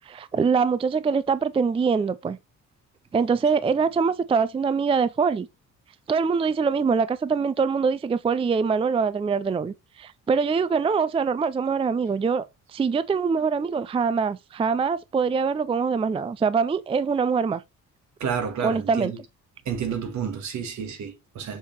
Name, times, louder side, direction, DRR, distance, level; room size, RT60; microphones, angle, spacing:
voice 1, 0.1-2.4 3.1-5.5 6.1-12.5 12.7-17.6 18.6-19.1, right 5 dB, 20° right, 0.4 m, -23 dB
voice 2, 18.2-19.2 19.7-21.6, right 7 dB, 70° right, 1.8 m, -30 dB
6.6 x 3.4 x 4.1 m
cardioid pair, 90°, 30 cm